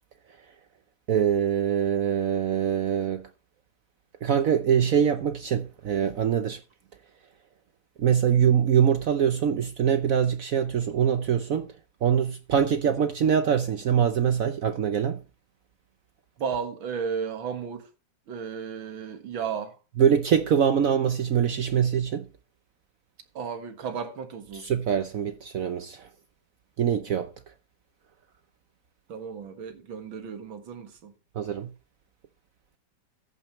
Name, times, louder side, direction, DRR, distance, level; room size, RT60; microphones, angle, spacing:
voice 1, 1.1-3.2 4.2-6.6 8.0-11.7 12.0-15.2 20.0-22.3 24.5-26.1 26.8-27.3 31.4-31.7, right 8 dB, 65° right, 0.9 m, -23 dB
voice 2, 16.4-17.9 18.3-19.8 23.3-24.7 29.1-31.1, right 6 dB, 85° right, 2.4 m, -34 dB
14.0 x 9.0 x 3.1 m
omnidirectional pair, 2.1 m